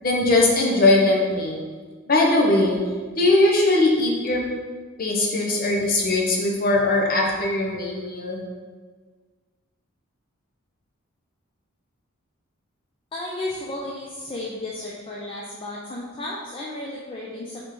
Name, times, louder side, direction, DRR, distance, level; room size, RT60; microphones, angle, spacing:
voice 1, 0.0-1.6 2.1-2.8 3.2-4.4 5.0-8.4, left 2 dB, 45° left, -1 dB, 0.7 m, -20 dB
voice 2, 13.1-17.6, left 1 dB, 25° left, -4 dB, 0.4 m, -33 dB
4.7 x 3.6 x 3.0 m, 1.5 s
head